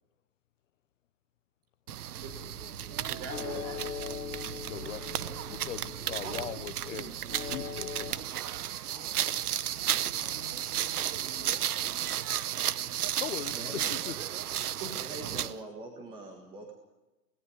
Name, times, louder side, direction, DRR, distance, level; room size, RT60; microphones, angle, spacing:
sound 1, 1.9-15.6, right 11 dB, 75° right, 1.0 m, -34 dB
sound 2, 2.2-8.1, left 8 dB, 80° left, 1.9 m, -42 dB
voice 1, 2.9-4.1 6.2-6.6 6.9-7.2 8.9-12.4 14.8-15.1, right 4 dB, 40° right, 4.4 m, -46 dB
voice 2, 4.4-7.1 7.5-8.3 13.2-14.2, left 11 dB, 55° left, 1.0 m, -40 dB
voice 3, 13.5-13.9 15.0-16.7, right 2 dB, 10° right, 1.7 m, -43 dB
18.5 x 17.0 x 10.0 m
hypercardioid pair, 160°, 46 cm